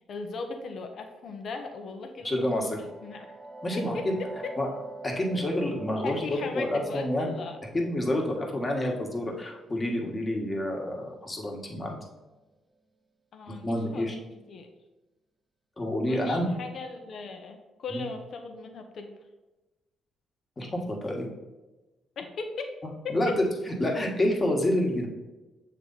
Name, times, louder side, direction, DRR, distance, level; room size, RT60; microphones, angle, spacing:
voice 1, 0.1-3.4 3.7-4.6 6.0-7.6 13.3-14.7 16.1-19.1 22.2-22.8 23.0-23.1, left 4 dB, 60° left, 5 dB, 0.8 m, -38 dB
voice 2, 2.2-2.8 3.6-4.1 4.6-4.7 5.0-7.4 7.7-12.0 13.5-14.1 15.8-16.5 17.9-18.0 20.6-21.3 23.1-23.3 23.7-25.1, left 1 dB, 25° left, 0 dB, 1.4 m, -28 dB
sound 1, 2.3-11.8, right 2 dB, 15° right, 0.9 m, -46 dB
7.4 x 3.3 x 4.0 m, 1.1 s
cardioid pair, 90°, 0 cm